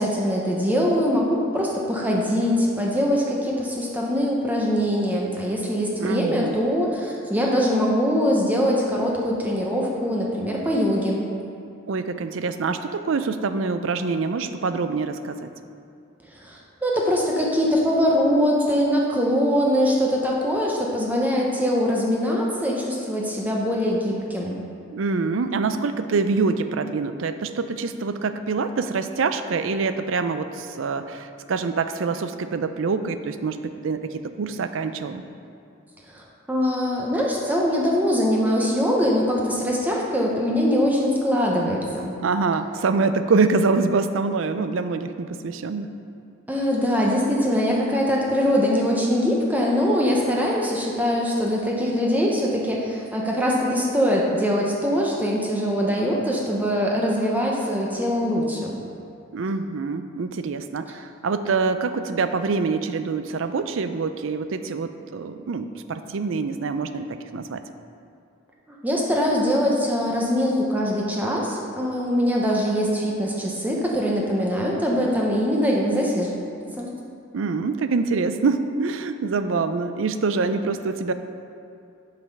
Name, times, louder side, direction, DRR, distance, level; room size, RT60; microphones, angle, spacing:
voice 1, 0.0-11.2 16.3-24.6 36.1-42.2 46.5-58.8 68.8-76.3 76.8-76.9, equal, 10° right, -3 dB, 0.8 m, -22 dB
voice 2, 6.0-6.6 11.9-15.5 24.9-35.3 42.2-45.9 59.3-67.6 77.3-81.1, right 4 dB, 65° right, 10 dB, 0.4 m, -25 dB
7.6 x 5.8 x 5.3 m, 2.5 s
head